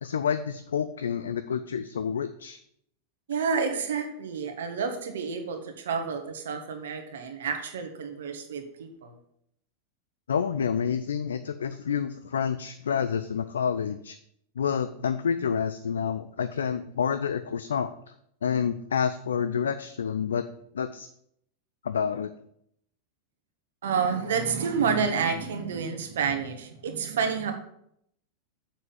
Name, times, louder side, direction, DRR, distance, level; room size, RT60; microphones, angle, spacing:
voice 1, 0.0-2.6 10.3-14.2 14.6-17.9 18.4-20.4 20.7-21.1 21.8-22.3, left 7 dB, 65° left, 11 dB, 0.5 m, -28 dB
voice 2, 3.3-9.1 23.8-27.5, right 6 dB, 60° right, 6 dB, 1.6 m, -29 dB
7.1 x 6.1 x 7.2 m, 0.72 s
figure-of-eight pair, 90°, 0 cm